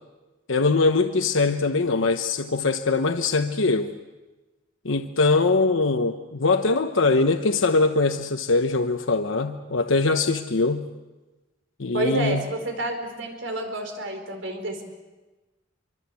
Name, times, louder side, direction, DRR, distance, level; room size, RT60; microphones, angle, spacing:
voice 1, 0.5-4.0 4.8-10.9 11.8-12.4, left 3 dB, 85° left, 7 dB, 1.1 m, -22 dB
voice 2, 11.9-14.8, right 1 dB, 75° right, 5 dB, 4.5 m, -29 dB
26.0 x 24.5 x 8.4 m, 1.1 s
head